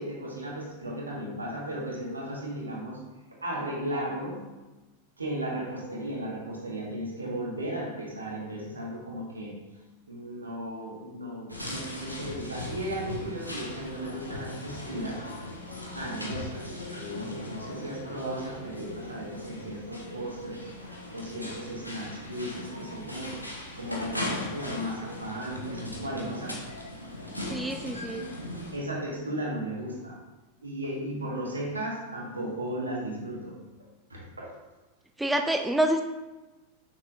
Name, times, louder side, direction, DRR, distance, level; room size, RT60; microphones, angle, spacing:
voice 1, 0.0-3.0 3.4-4.5 5.2-9.6 10.1-15.3 15.9-23.4 23.7-26.7 28.7-30.2 30.6-33.6 34.1-34.5, right 1 dB, 75° right, -2 dB, 1.5 m, -35 dB
sound 1, 11.5-28.8, left 1 dB, 90° left, 1.0 m, -38 dB
voice 2, 27.5-28.2 35.2-36.0, right 1 dB, 5° right, 5 dB, 0.4 m, -27 dB
6.1 x 6.0 x 2.5 m, 1.1 s
figure-of-eight pair, 90°, 0 cm